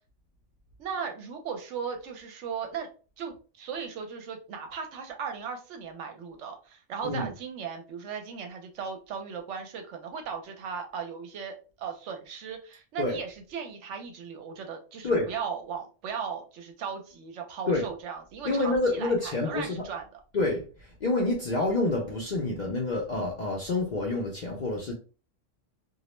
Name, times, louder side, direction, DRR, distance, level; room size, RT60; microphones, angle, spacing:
voice 1, 0.8-2.9 3.2-20.2, right 6 dB, 75° right, 0.9 m, -37 dB
voice 2, 18.4-19.7 20.3-20.6 21.0-24.9, left 2 dB, 60° left, 0.5 m, -27 dB
2.3 x 2.0 x 2.9 m
omnidirectional pair, 1.3 m